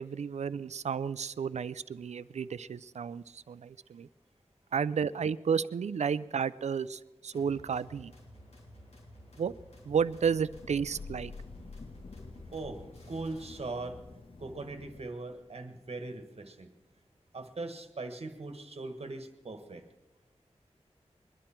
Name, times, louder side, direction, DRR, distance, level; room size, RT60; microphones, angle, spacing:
voice 1, 0.0-4.1 4.7-8.1 9.4-9.5 9.9-11.3, right 6 dB, 85° right, 17 dB, 0.4 m, -32 dB
sound 1, 7.3-14.0, equal, 70° left, 3.6 m, -53 dB
Thunder / Rain, 9.6-15.4, left 4 dB, 55° left, 0.9 m, -49 dB
voice 2, 13.1-14.0 14.4-16.7 17.3-19.8, right 2 dB, 65° right, 7 dB, 1.4 m, -40 dB
22.0 x 11.0 x 4.4 m, 1.1 s
wide cardioid pair, 65°, 11 cm